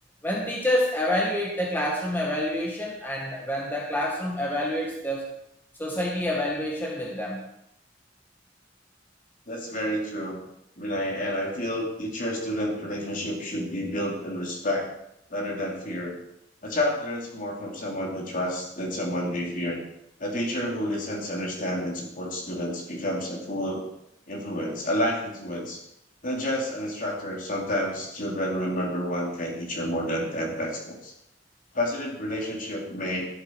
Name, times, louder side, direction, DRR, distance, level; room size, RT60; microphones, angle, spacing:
voice 1, 0.2-5.3 5.8-7.4, left 1 dB, 10° left, -1 dB, 1.6 m, -27 dB
voice 2, 9.5-10.4 10.8-14.9 15.3-16.2 16.6-19.8 20.2-23.8 24.3-25.8 26.2-31.1 31.7-33.3, equal, 45° left, -1 dB, 3.2 m, -30 dB
13.0 x 12.0 x 4.7 m, 0.79 s
head